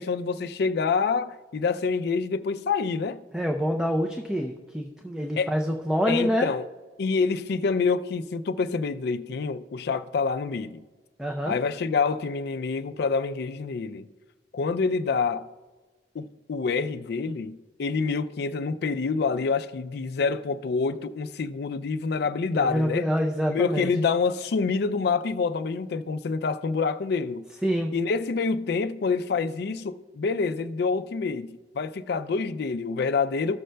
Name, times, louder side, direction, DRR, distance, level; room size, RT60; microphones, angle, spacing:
voice 1, 0.0-3.2 5.4-5.5 6.1-6.7 7.0-10.8 11.4-14.1 14.5-15.5 16.1-23.1 23.5-27.4 27.9-33.6, left 4 dB, 65° left, 0.4 m, -27 dB
voice 2, 3.3-6.5 11.2-11.6 22.5-23.9 27.6-27.9, equal, 5° right, 0.4 m, -26 dB
14.5 x 6.4 x 2.2 m
head